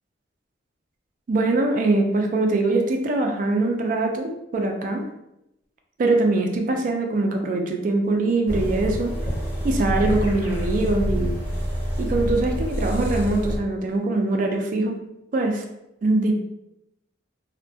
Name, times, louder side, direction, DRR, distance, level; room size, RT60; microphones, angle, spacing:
voice 1, 1.3-5.1 6.0-9.1 9.6-11.4 12.0-15.0 15.3-15.6 16.0-16.3, right 2 dB, 45° right, 3 dB, 0.3 m, -22 dB
Keyboard (musical), 8.0-10.8, equal, 25° right, 0.8 m, -45 dB
sound 1, 8.5-13.6, equal, 50° left, 0.6 m, -26 dB
2.2 x 2.1 x 2.6 m, 0.85 s
head